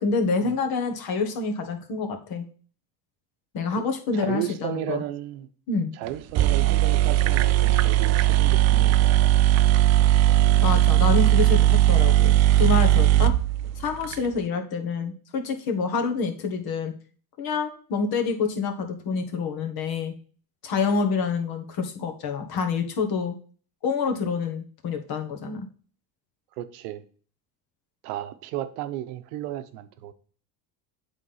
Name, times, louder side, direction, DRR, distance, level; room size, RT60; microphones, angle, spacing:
voice 1, 0.0-2.5 3.5-5.0 5.7-5.9 10.6-13.3 13.8-16.9 17.4-20.1 20.6-23.4 23.8-25.7, left 4 dB, 55° left, 1.6 m, -27 dB
voice 2, 4.1-5.5 5.9-10.0 26.6-27.0 28.0-30.1, right 13 dB, 80° right, 0.9 m, -34 dB
sound 1, 6.1-6.2 6.4-14.2, right 14 dB, 40° right, 0.4 m, -19 dB
8.2 x 3.7 x 5.6 m
supercardioid pair, 105°, 45 cm